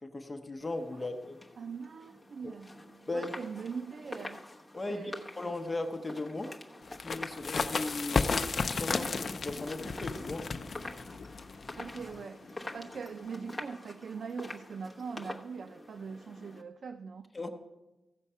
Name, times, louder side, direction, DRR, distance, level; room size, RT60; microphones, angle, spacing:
voice 1, 0.0-1.4 2.4-2.5 3.1-3.3 4.7-6.6 7.0-10.5 17.3-17.5, left 2 dB, 20° left, 4 dB, 0.9 m, -37 dB
sound 1, 0.6-16.6, left 1 dB, ahead, 1.1 m, -46 dB
voice 2, 1.6-2.7 3.1-4.4 4.9-5.2 11.8-17.3, right 5 dB, 65° right, 10 dB, 0.5 m, -42 dB
sound 2, 6.9-12.2, left 4 dB, 45° left, 0.5 m, -33 dB
sound 3, 7.1-13.6, left 4 dB, 75° left, 0.8 m, -49 dB
15.0 x 7.2 x 5.6 m, 1.1 s
wide cardioid pair, 140°, 0 cm